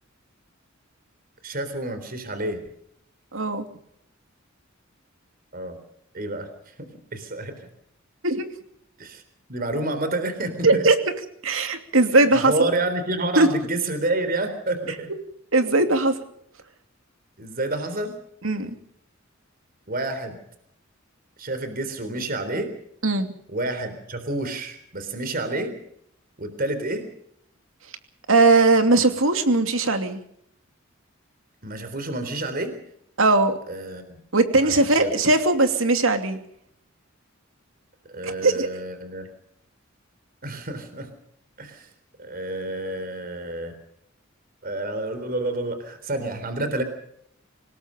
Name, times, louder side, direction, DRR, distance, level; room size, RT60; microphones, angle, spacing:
voice 1, 1.4-2.6 5.5-5.8 6.1-6.5 6.8-7.6 9.0-9.2 9.5-10.8 12.1-15.1 17.4-18.2 19.9-20.4 21.4-22.7 23.5-25.7 26.4-27.1 31.6-32.7 33.7-34.2 34.6-35.1 38.0-39.3 40.4-41.1 41.6-41.9 42.2-43.8 44.6-46.8, right 2 dB, 45° right, 9 dB, 3.8 m, -29 dB
voice 2, 3.3-3.7 8.2-8.4 10.6-11.0 11.4-12.5 13.4-13.5 15.5-16.2 18.4-18.7 23.0-23.3 28.3-30.2 33.2-33.6 34.3-36.4 38.2-38.7, right 2 dB, 75° right, 7 dB, 2.8 m, -19 dB
26.0 x 19.5 x 5.2 m, 0.71 s
head